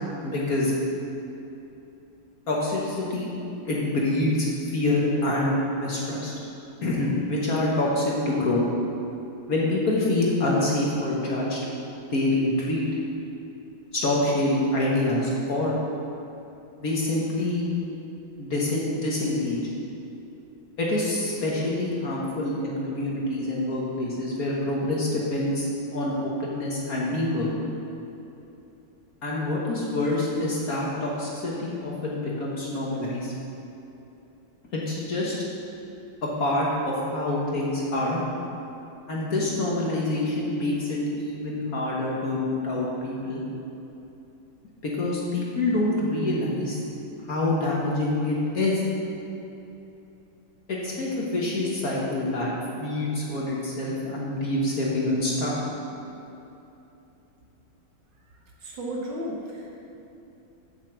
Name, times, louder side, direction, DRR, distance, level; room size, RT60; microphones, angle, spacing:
voice 1, 0.2-0.7 2.5-3.3 3.6-6.3 6.8-8.6 9.5-11.6 12.1-12.8 13.9-15.8 16.8-17.6 18.4-19.6 20.8-27.5 29.2-33.3 34.7-35.4 36.2-38.2 39.1-43.4 44.8-46.8 47.3-48.8 50.7-52.5 52.8-55.5, left 2 dB, 50° left, -4 dB, 1.5 m, -26 dB
voice 2, 58.6-59.7, equal, 65° right, -2 dB, 1.7 m, -33 dB
6.8 x 5.9 x 7.4 m, 2.9 s
omnidirectional pair, 2.2 m